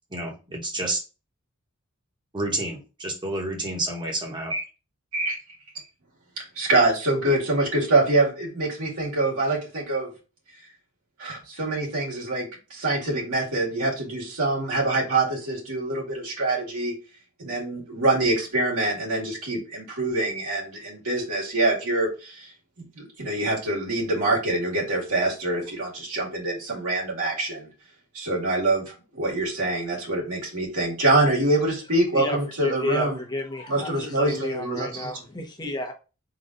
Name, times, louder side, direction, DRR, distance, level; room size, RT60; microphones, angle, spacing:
voice 1, 0.1-1.0 2.3-4.6, right 2 dB, 20° right, 0 dB, 1.2 m, -29 dB
voice 2, 6.4-10.1 11.2-17.0 17.4-22.5 22.8-27.7 28.1-33.2 33.7-35.1, right 2 dB, 75° right, -3 dB, 2.2 m, -25 dB
voice 3, 32.1-35.9, left 1 dB, 20° left, 2 dB, 0.8 m, -32 dB
3.9 x 3.0 x 3.9 m, 0.32 s
head